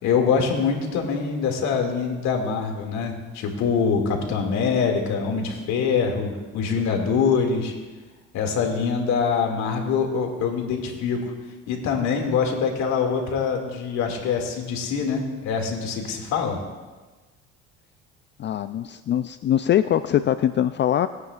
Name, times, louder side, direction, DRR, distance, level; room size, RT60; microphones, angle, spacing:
voice 1, 0.0-7.7 8.3-11.3 11.7-16.6, left 6 dB, 70° left, 2 dB, 2.3 m, -24 dB
voice 2, 18.4-21.1, left 11 dB, 40° left, 12 dB, 0.4 m, -22 dB
20.5 x 9.4 x 2.5 m, 1.3 s
supercardioid pair, 90°, 29 cm